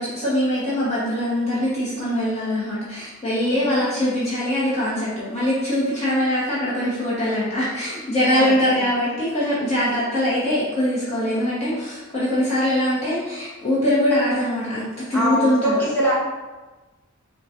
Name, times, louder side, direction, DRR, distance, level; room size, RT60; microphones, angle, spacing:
voice 1, 0.0-15.7, left 1 dB, 30° left, -9 dB, 0.9 m, -22 dB
voice 2, 8.3-8.9 15.1-16.1, equal, 10° left, -8 dB, 1.2 m, -23 dB
3.8 x 2.2 x 4.2 m, 1.2 s
head